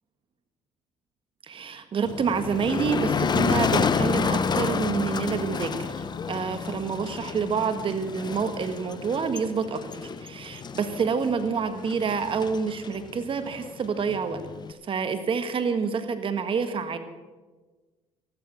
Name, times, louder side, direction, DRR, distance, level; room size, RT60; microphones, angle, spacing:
voice 1, 1.4-14.4 14.7-17.0, right 5 dB, 45° right, 9 dB, 1.7 m, -28 dB
Motor vehicle (road), 2.0-14.7, left 6 dB, 35° left, 0.9 m, -30 dB
14.5 x 12.0 x 6.3 m, 1.3 s
supercardioid pair, 70°, 12 cm